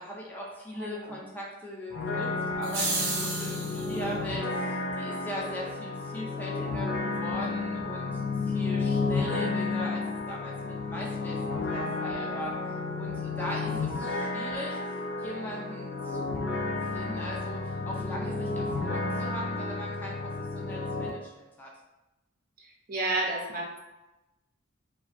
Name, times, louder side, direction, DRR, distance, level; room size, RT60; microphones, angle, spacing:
voice 1, 0.0-10.0 10.3-12.5 13.0-16.5 16.9-21.7, equal, 10° left, -4 dB, 0.4 m, -40 dB
voice 2, 0.7-1.2 22.6-23.8, right 2 dB, 45° right, -1 dB, 0.5 m, -32 dB
sound 1, 1.9-21.1, left 3 dB, 75° left, 0.4 m, -32 dB
sound 2, 2.6-3.9, right 3 dB, 90° right, 0.7 m, -31 dB
2.4 x 2.1 x 2.4 m, 1.0 s
head